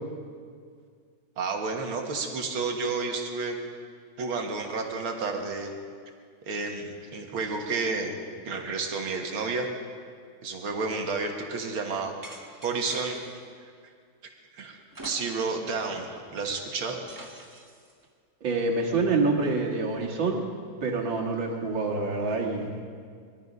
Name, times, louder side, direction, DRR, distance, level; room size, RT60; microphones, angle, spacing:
voice 1, 1.4-3.6 4.2-5.7 6.5-8.1 8.5-9.7 10.4-12.1 12.6-13.2 14.5-14.8 15.0-17.0, right 4 dB, 85° right, 3 dB, 2.4 m, -31 dB
sound 1, 12.2-13.4 14.9-15.7 16.0-16.1 17.1-17.9, right 1 dB, 15° right, 1.0 m, -45 dB
voice 2, 18.4-20.4 20.8-22.7, right 3 dB, 70° right, -1 dB, 2.6 m, -26 dB
21.5 x 12.5 x 5.4 m, 2.1 s
omnidirectional pair, 2.2 m